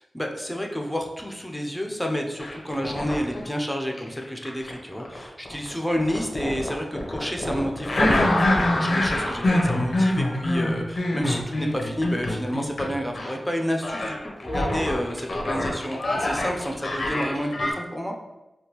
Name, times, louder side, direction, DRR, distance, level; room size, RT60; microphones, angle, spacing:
voice 1, 0.1-18.1, equal, 5° left, 2 dB, 0.5 m, -30 dB
sound 1, 2.4-3.4 3.9-12.9 13.1-13.4 13.8-17.7, left 1 dB, 65° left, 0.8 m, -25 dB
3.5 x 2.2 x 2.9 m, 0.97 s
cardioid pair, 50°, 0 cm